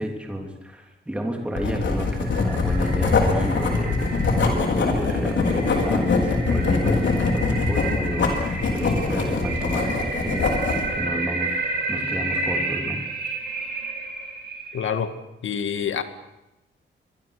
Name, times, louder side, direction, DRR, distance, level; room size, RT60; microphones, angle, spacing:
voice 1, 0.0-4.1 4.4-13.0, equal, 5° right, 1 dB, 3.2 m, -31 dB
Writing, 1.6-10.9, left 4 dB, 70° left, 4.6 m, -23 dB
sound 1, 1.6-15.0, right 3 dB, 60° right, 6.6 m, -31 dB
voice 2, 14.7-15.1 15.4-16.0, left 7 dB, 85° left, 9 dB, 2.0 m, -26 dB
24.5 x 23.5 x 6.7 m, 0.93 s
wide cardioid pair, 155°, 20 cm